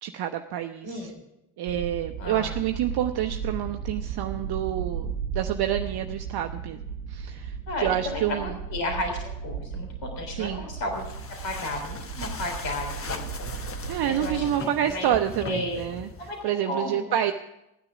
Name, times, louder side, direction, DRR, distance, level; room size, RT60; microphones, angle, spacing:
voice 1, 0.0-1.1 1.6-6.8 7.1-8.6 10.3-10.6 13.6-16.1 16.4-17.3, right 11 dB, 50° right, 7 dB, 0.7 m, -28 dB
voice 2, 0.8-1.2 2.2-2.5 7.7-11.1 11.4-13.5 14.1-15.2 15.4-15.8 16.2-16.4 16.7-17.0, left 2 dB, 60° left, 3 dB, 3.5 m, -33 dB
sound 1, 1.7-14.6, right 6 dB, 85° right, 1.0 m, -35 dB
sound 2, 10.9-16.5, left 4 dB, 25° left, 1.1 m, -39 dB
15.0 x 9.7 x 5.9 m, 0.89 s
hypercardioid pair, 40°, 49 cm